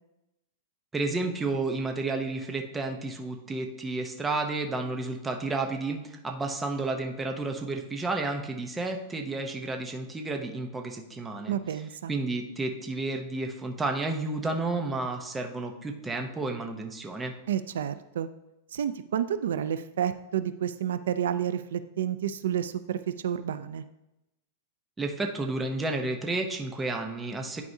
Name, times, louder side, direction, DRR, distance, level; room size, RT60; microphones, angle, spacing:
voice 1, 0.9-11.6 12.1-17.3 25.0-27.6, right 3 dB, 10° right, 3 dB, 0.7 m, -31 dB
voice 2, 11.5-12.1 17.5-18.3 18.7-23.9, right 9 dB, 85° right, 12 dB, 0.4 m, -30 dB
10.5 x 4.7 x 2.7 m, 0.91 s
supercardioid pair, 160°, 0 cm